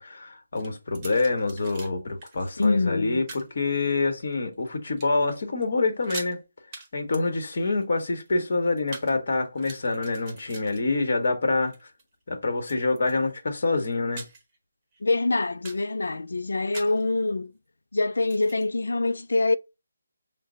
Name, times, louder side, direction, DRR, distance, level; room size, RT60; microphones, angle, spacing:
voice 1, 0.0-6.4 6.9-11.7 12.3-14.2, left 3 dB, 50° left, 1.2 m, -26 dB
sound 1, 0.5-1.9 2.2-2.7 3.3-3.5 4.1-4.7 5.0-5.4 5.6-5.7 5.9-6.3 6.7-6.9 7.1-9.1 9.5-11.3 11.6-12.0 12.6-13.4 13.8-14.6 14.9-15.0 15.4-15.9 16.7-17.0 18.1-18.7, right 3 dB, 20° right, 0.9 m, -43 dB
voice 2, 2.6-3.2 15.0-17.5 17.9-19.6, left 3 dB, 85° left, 0.3 m, -25 dB
5.6 x 2.1 x 3.7 m
hypercardioid pair, 170°, 0 cm